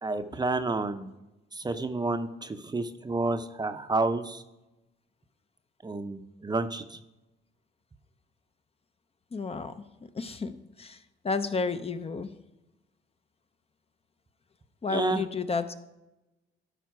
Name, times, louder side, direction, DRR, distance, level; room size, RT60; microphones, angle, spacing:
voice 1, 0.0-1.1 1.5-4.4 5.8-7.0 14.9-15.2, right 3 dB, 20° right, 9 dB, 0.6 m, -30 dB
voice 2, 9.3-12.3 14.8-15.7, left 4 dB, 30° left, 10 dB, 0.6 m, -32 dB
12.0 x 5.2 x 4.7 m, 0.98 s
cardioid pair, 90°, 20 cm